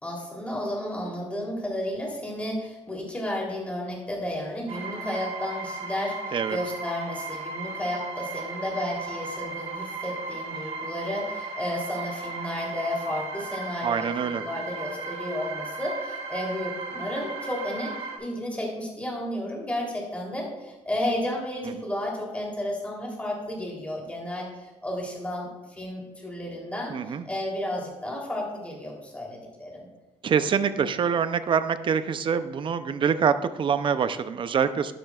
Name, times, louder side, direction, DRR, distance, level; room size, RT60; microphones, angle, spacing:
voice 1, 0.0-29.9, left 1 dB, 10° left, -2 dB, 3.3 m, -32 dB
sound 1, 4.7-18.2, right 3 dB, 80° right, 2.3 m, -36 dB
voice 2, 13.8-14.4 26.9-27.2 30.2-34.9, right 7 dB, 45° right, 12 dB, 0.6 m, -25 dB
12.0 x 10.0 x 2.4 m, 1.1 s
cardioid pair, 125°, 12 cm